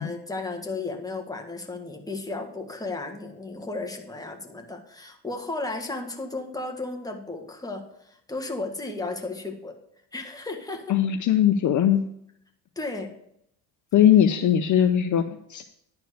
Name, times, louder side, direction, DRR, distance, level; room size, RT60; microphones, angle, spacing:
voice 1, 0.0-9.8 10.1-10.9 12.7-13.1, left 3 dB, 10° left, 2 dB, 1.5 m, -34 dB
voice 2, 10.9-12.0 13.9-15.6, left 10 dB, 45° left, 7 dB, 0.7 m, -20 dB
10.5 x 4.6 x 6.8 m, 0.73 s
cardioid pair, 100°, 42 cm